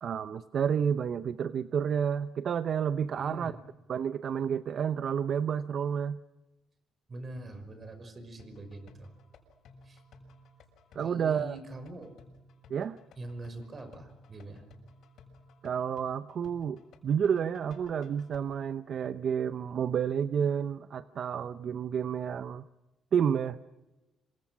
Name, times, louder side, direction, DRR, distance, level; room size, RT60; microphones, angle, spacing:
voice 1, 0.0-3.5 3.9-6.2 10.9-11.6 12.7-13.0 15.6-22.6 23.1-23.6, right 7 dB, 60° right, 12 dB, 0.8 m, -30 dB
voice 2, 3.2-3.6 7.1-9.1 9.8-10.0 11.0-12.1 13.2-14.6, right 2 dB, 35° right, 9 dB, 5.7 m, -43 dB
sound 1, 8.4-18.4, left 3 dB, 75° left, 6.5 m, -56 dB
27.0 x 26.0 x 6.2 m, 1.1 s
cardioid pair, 90°, 0 cm